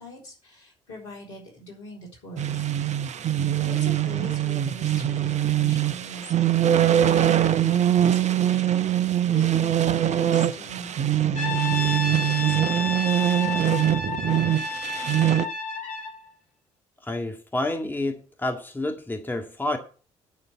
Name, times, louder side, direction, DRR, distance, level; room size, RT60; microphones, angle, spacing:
voice 1, 0.0-2.7 3.6-13.0, equal, 75° left, 4.1 m, -42 dB
sound 1, 2.4-15.5, right 11 dB, 45° right, 0.8 m, -23 dB
Brass instrument, 11.3-16.2, left 3 dB, 55° left, 3.9 m, -30 dB
voice 2, 17.0-19.8, left 2 dB, 10° left, 1.9 m, -29 dB
9.6 x 6.6 x 7.2 m
figure-of-eight pair, 50°, 16 cm